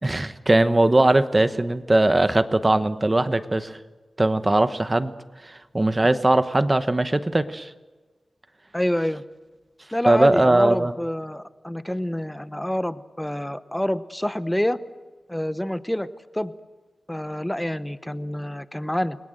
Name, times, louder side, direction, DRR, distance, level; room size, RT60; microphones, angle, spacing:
voice 1, 0.0-3.8 4.2-5.1 5.4-7.7 10.1-10.9, right 2 dB, 20° right, 11 dB, 1.0 m, -20 dB
voice 2, 8.7-9.2 9.9-14.8 15.3-16.1 16.3-16.5 17.1-19.2, left 1 dB, 5° left, 13 dB, 0.9 m, -27 dB
29.5 x 22.0 x 7.8 m, 1.3 s
wide cardioid pair, 160°, 0 cm